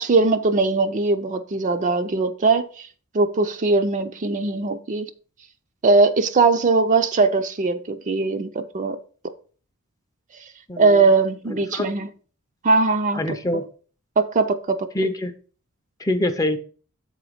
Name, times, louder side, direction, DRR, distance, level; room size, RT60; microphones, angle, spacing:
voice 1, 0.0-2.9 3.1-5.1 5.8-9.0 10.8-12.1 12.6-13.2 14.2-14.9, right 3 dB, 35° right, 0.5 m, -20 dB
voice 2, 10.7-11.1 11.5-11.8 13.1-13.7 14.9-15.3 16.0-16.6, left 1 dB, 15° left, 0.6 m, -25 dB
7.7 x 4.0 x 4.9 m
head